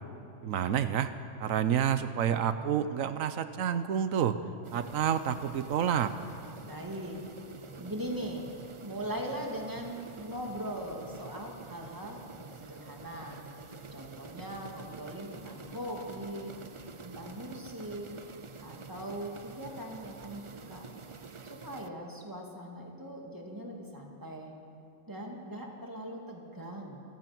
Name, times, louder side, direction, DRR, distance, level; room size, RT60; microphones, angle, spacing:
voice 1, 0.4-1.1 1.4-4.4 4.7-6.1, right 9 dB, 90° right, 11 dB, 1.2 m, -29 dB
sound 1, 4.6-21.9, right 4 dB, 35° right, 0.5 m, -48 dB
voice 2, 6.6-7.2 7.8-8.5 8.8-13.4 13.9-16.5 17.0-18.1 18.6-20.8 21.4-24.5 25.1-27.0, right 1 dB, 15° right, 0 dB, 2.6 m, -40 dB
29.0 x 14.5 x 6.1 m, 2.6 s
omnidirectional pair, 1.4 m